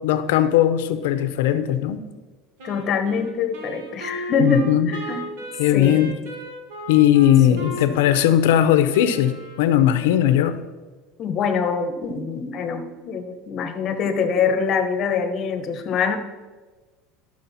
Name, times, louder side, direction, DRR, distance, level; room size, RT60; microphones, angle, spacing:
voice 1, 0.0-2.0 4.4-4.9 5.6-6.1 6.9-9.3 9.6-10.6, left 11 dB, 90° left, 11 dB, 0.7 m, -18 dB
voice 2, 2.6-5.2 5.7-6.1 7.5-8.0 11.2-16.2, left 5 dB, 40° left, 8 dB, 1.0 m, -24 dB
Wind instrument woodwind instrument, 2.6-10.1, equal, 85° right, 1.9 m, -37 dB
11.5 x 6.4 x 4.2 m, 1.3 s
supercardioid pair, 140°, 0 cm